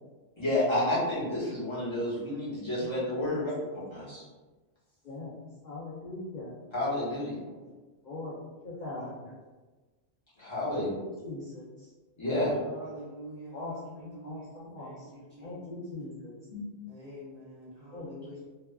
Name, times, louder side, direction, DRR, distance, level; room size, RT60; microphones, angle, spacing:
voice 1, 0.4-3.5 3.9-4.2 6.7-7.3 10.4-10.9 12.2-12.5, left 1 dB, 25° left, -9 dB, 0.9 m, -30 dB
voice 2, 3.3-3.7 5.0-5.3 5.6-6.5 8.0-8.3 8.6-9.2 10.7-11.9 13.5-16.7 17.9-18.1, left 2 dB, 65° left, -8 dB, 0.4 m, -41 dB
voice 3, 7.0-7.7 9.0-9.3 12.6-15.8 16.9-18.4, right 1 dB, 65° right, -8 dB, 0.4 m, -47 dB
2.7 x 2.2 x 2.2 m, 1.3 s
omnidirectional pair, 1.3 m